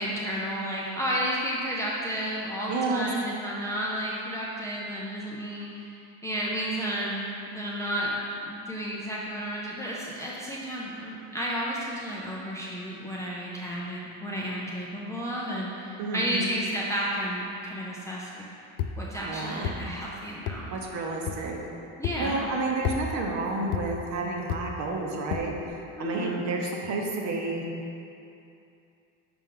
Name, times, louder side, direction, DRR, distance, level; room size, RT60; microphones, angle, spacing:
voice 1, 0.0-18.4 19.0-20.8 22.0-22.5 26.0-26.4, equal, 10° left, -6 dB, 0.3 m, -32 dB
voice 2, 2.7-3.1 16.0-16.4 19.2-19.8 20.7-21.6 22.2-27.6, right 3 dB, 50° right, 0 dB, 0.9 m, -30 dB
sound 1, 18.8-19.0 19.6-19.8 20.5-20.6 21.3-21.4 22.0-22.2 22.8-23.0 23.7-23.9 24.5-24.6 25.3-25.5, left 10 dB, 65° left, 0.5 m, -30 dB
6.0 x 4.4 x 3.7 m, 2.6 s
cardioid pair, 140°, 36 cm